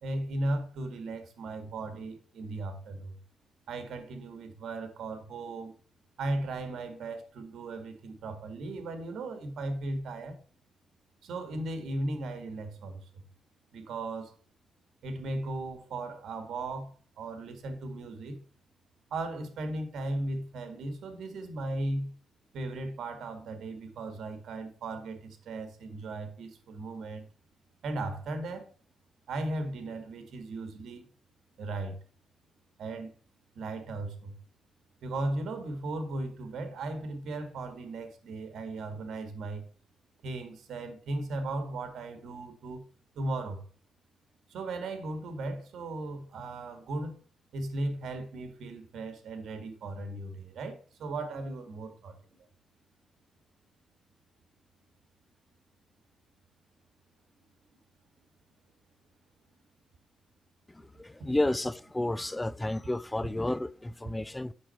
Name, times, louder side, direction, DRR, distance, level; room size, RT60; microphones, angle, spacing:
voice 1, 0.0-3.2 3.7-5.7 6.2-10.4 11.2-13.2 13.7-14.4 15.0-18.4 19.1-22.1 22.5-27.2 27.8-28.7 29.3-31.1 31.6-32.0 32.8-33.1 33.6-34.4 35.0-39.7 40.2-42.8 43.2-43.6 44.5-47.2 47.5-52.2, right 2 dB, 80° right, 2.0 m, -36 dB
voice 2, 60.7-64.5, left 1 dB, 15° left, 0.3 m, -31 dB
8.6 x 6.7 x 4.4 m
cardioid pair, 115°, 0 cm